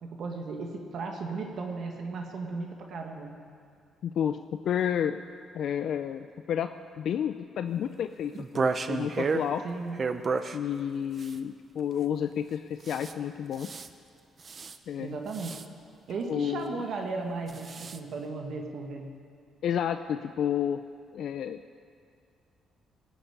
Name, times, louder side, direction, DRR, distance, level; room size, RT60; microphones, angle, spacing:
voice 1, 0.0-3.4 9.6-10.0 15.0-15.6 16.1-19.1, right 3 dB, 65° right, 2 dB, 1.6 m, -35 dB
voice 2, 4.0-4.4 4.6-5.2 5.5-6.7 7.0-9.6 10.5-13.8 14.9-15.2 16.3-16.8 19.6-20.8 21.1-21.8, left 9 dB, 70° left, 9 dB, 0.4 m, -31 dB
sound 1, 8.3-9.5 9.9-10.6 11.2-11.4 12.8-13.1 13.5-13.9 14.4-14.8 15.3-15.6 17.5-18.0, right 4 dB, 40° right, 0.7 m, -31 dB
18.5 x 7.2 x 8.7 m, 2.3 s
cardioid pair, 90°, 0 cm